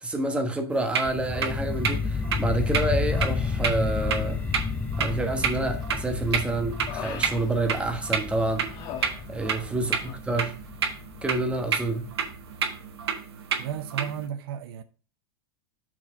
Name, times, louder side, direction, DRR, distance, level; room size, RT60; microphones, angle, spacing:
voice 1, 0.0-4.4 5.0-8.6 9.3-10.5 11.2-12.1, right 2 dB, 10° right, 1.3 m, -28 dB
sound 1, 0.7-14.3, right 7 dB, 85° right, 1.4 m, -31 dB
sound 2, 1.0-12.1, left 5 dB, 10° left, 0.5 m, -31 dB
Human voice, 5.0-5.6 6.0-8.2 8.6-9.7 9.9-10.2, left 8 dB, 50° left, 1.4 m, -42 dB
voice 2, 9.4-9.8 13.6-14.8, right 9 dB, 65° right, 0.7 m, -34 dB
6.2 x 4.5 x 6.3 m
hypercardioid pair, 120°, 13 cm